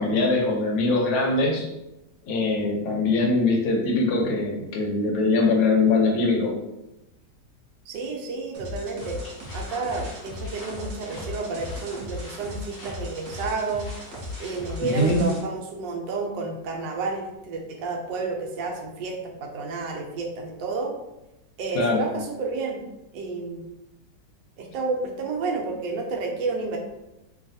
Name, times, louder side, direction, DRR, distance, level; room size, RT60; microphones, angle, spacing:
voice 1, 0.0-1.7 2.2-6.5 14.8-15.3 21.7-22.1, left 3 dB, 70° left, 0 dB, 1.2 m, -22 dB
voice 2, 7.9-9.2 9.5-13.9 14.4-21.0 21.6-22.8 23.1-23.7 24.6-26.8, right 3 dB, 85° right, 1 dB, 1.2 m, -30 dB
sound 1, 8.5-15.4, left 2 dB, 65° right, 0.9 m, -37 dB
sound 2, 9.0-15.4, equal, 50° left, 0.7 m, -45 dB
3.2 x 2.3 x 2.6 m, 0.92 s
omnidirectional pair, 1.9 m